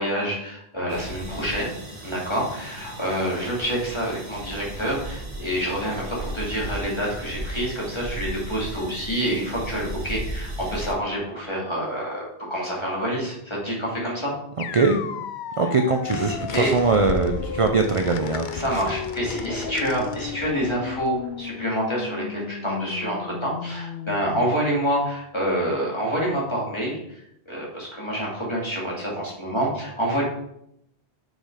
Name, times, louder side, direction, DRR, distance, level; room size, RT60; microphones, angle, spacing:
voice 1, 0.0-1.7 2.0-14.3 16.1-16.8 18.5-30.2, equal, 25° left, -4 dB, 3.0 m, -27 dB
sound 1, 0.9-10.9, right 1 dB, 85° right, 2.2 m, -36 dB
sound 2, 14.6-24.5, left 7 dB, 90° left, 0.9 m, -35 dB
voice 2, 14.7-15.0 15.6-18.5, right 3 dB, 40° right, 5 dB, 0.6 m, -21 dB
sound 3, 16.1-21.5, left 5 dB, 55° left, 0.7 m, -36 dB
6.8 x 6.4 x 4.9 m, 0.76 s
omnidirectional pair, 1.1 m